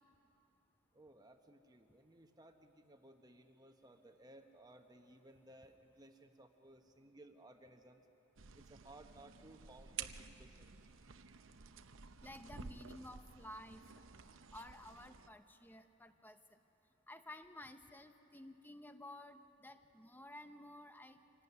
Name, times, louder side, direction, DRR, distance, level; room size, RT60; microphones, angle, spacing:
voice 1, 0.9-8.1 8.5-10.7, right 1 dB, 20° right, 5 dB, 1.1 m, -60 dB
sound 1, 8.4-15.3, right 7 dB, 65° right, 0.8 m, -52 dB
voice 2, 12.2-14.0 14.5-16.6 17.1-21.2, left 1 dB, 10° left, 8 dB, 0.8 m, -53 dB
25.5 x 17.5 x 9.6 m, 3.0 s
head